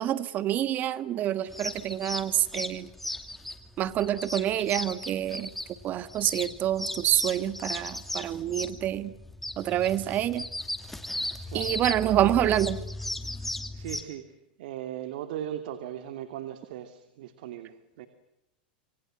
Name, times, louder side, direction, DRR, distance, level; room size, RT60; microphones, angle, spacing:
voice 1, 0.0-2.9 3.8-5.5 5.8-9.1 9.6-10.4 11.5-12.8, right 12 dB, 35° right, 1.7 m, -27 dB
sound 1, 1.5-14.0, left 1 dB, 5° left, 2.5 m, -36 dB
voice 2, 11.5-12.2 13.5-14.2 14.6-18.1, right 11 dB, 70° right, 2.6 m, -38 dB
27.0 x 25.0 x 7.7 m
supercardioid pair, 125°, 5 cm